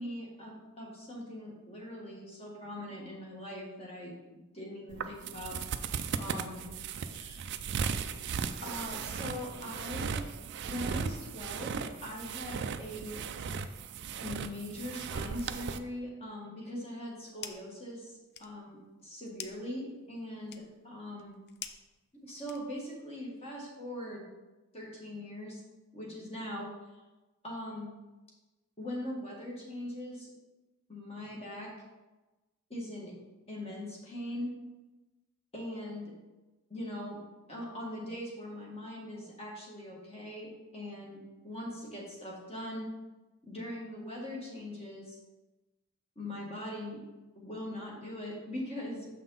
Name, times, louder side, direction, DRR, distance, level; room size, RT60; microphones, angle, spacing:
voice 1, 0.0-4.1 4.5-5.6 6.2-6.6 7.1-7.5 8.6-10.2 10.7-13.2 14.2-21.4 22.2-24.3 24.7-25.6 25.9-26.7 27.4-28.0 28.8-30.3 30.9-31.7 32.7-33.1 33.5-34.5 35.5-36.1 36.7-37.2 37.5-42.9 43.4-45.2 46.1-47.0 47.3-49.1, left 1 dB, 30° left, -3 dB, 1.7 m, -41 dB
sound 1, 4.9-15.8, right 6 dB, 55° right, 0.4 m, -37 dB
sound 2, 16.9-17.8 18.1-23.0, left 9 dB, 50° left, 0.4 m, -48 dB
6.5 x 5.7 x 3.9 m, 1.1 s
head